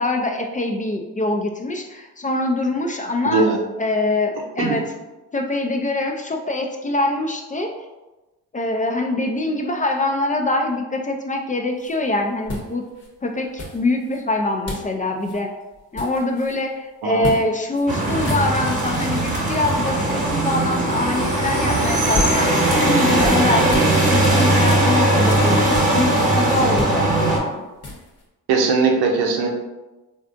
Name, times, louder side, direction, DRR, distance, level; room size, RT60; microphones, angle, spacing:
voice 1, 0.0-3.4 3.8-4.8 5.3-7.7 8.5-12.8 13.2-15.5 15.9-27.6, left 2 dB, 20° left, 3 dB, 0.3 m, -24 dB
voice 2, 3.3-3.6 4.6-4.8 17.0-17.4 28.5-29.5, right 4 dB, 85° right, 2 dB, 0.6 m, -19 dB
sound 1, 11.8-11.9 12.5-13.1 13.6-14.2 14.7-14.9 15.2-15.4 15.7-16.6 17.2-17.4 17.7-17.9 18.1-18.9 21.7-23.9 24.2-26.3 26.6-28.2, left 2 dB, 40° left, 0.9 m, -31 dB
sound 2, 17.9-27.4, right 1 dB, 20° right, 1.1 m, -19 dB
3.3 x 2.5 x 2.5 m, 1.1 s
supercardioid pair, 60°, 37 cm